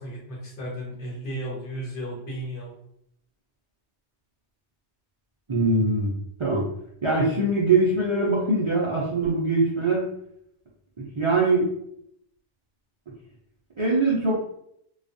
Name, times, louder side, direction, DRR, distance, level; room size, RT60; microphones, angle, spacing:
voice 1, 0.0-2.7, right 1 dB, 55° left, -3 dB, 0.9 m, -34 dB
voice 2, 5.5-6.1 6.4-6.6 7.0-10.1 11.0-11.7 13.8-14.4, right 2 dB, 50° right, -6 dB, 0.4 m, -22 dB
2.3 x 2.2 x 2.6 m, 0.74 s
omnidirectional pair, 1.2 m